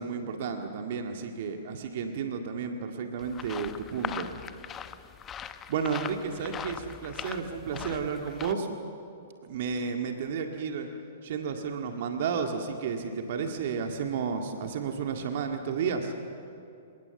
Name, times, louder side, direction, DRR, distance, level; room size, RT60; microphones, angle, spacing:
voice 1, 0.0-4.3 5.7-8.7 9.4-10.9 11.2-16.1, right 6 dB, 50° right, 4 dB, 2.0 m, -32 dB
sound 1, 3.2-8.5, left 8 dB, 20° left, 0.9 m, -40 dB
28.5 x 18.0 x 7.1 m, 2.5 s
figure-of-eight pair, 110°, 0 cm